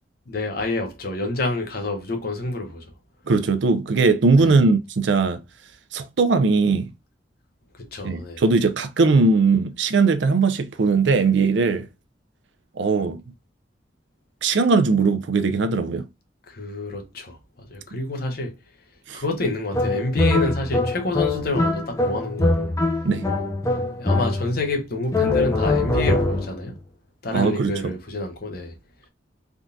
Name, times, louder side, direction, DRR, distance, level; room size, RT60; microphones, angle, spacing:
voice 1, 0.3-2.9 4.4-4.6 7.8-8.4 16.5-18.6 19.1-22.8 24.0-26.8 27.2-28.8, left 2 dB, 55° left, 0.8 m, -28 dB
voice 2, 3.3-5.4 5.9-6.9 8.0-11.8 12.8-13.2 14.4-16.1 19.1-19.2 23.0-23.2 27.3-27.9, right 4 dB, 80° right, 0.5 m, -19 dB
sound 1, 19.7-24.7 25.1-26.6, left 2 dB, 15° left, 0.5 m, -23 dB
3.6 x 2.6 x 2.2 m
head